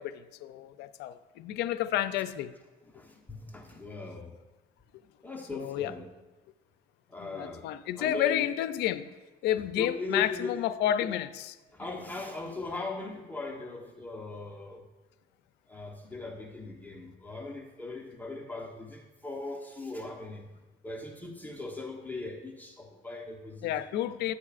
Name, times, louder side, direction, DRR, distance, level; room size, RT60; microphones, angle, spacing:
voice 1, 0.0-2.5 5.5-6.0 7.2-9.1 9.4-11.5 23.6-24.3, left 11 dB, 80° left, 13 dB, 0.5 m, -30 dB
voice 2, 2.9-4.3 5.2-6.1 7.1-7.7 8.0-8.4 9.8-10.6 11.0-11.1 11.7-14.9 15.7-20.5 20.8-23.7, left 3 dB, 10° left, -1 dB, 1.0 m, -39 dB
11.0 x 8.3 x 2.5 m, 1.2 s
cardioid pair, 110°, 17 cm